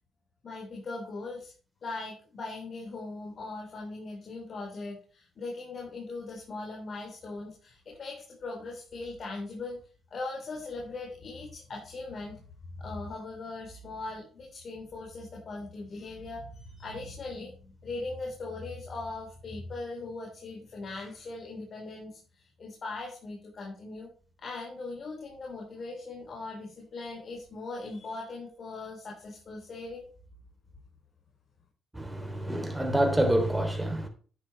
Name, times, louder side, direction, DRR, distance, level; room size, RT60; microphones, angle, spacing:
voice 1, 0.4-1.5 1.8-9.8 10.1-12.4 12.7-24.1 24.4-30.1, left 3 dB, 50° left, 4.0 m, -40 dB
voice 2, 31.9-34.1, right 1 dB, 10° right, 3.1 m, -27 dB
11.0 x 9.4 x 3.3 m
cardioid pair, 90°, 0 cm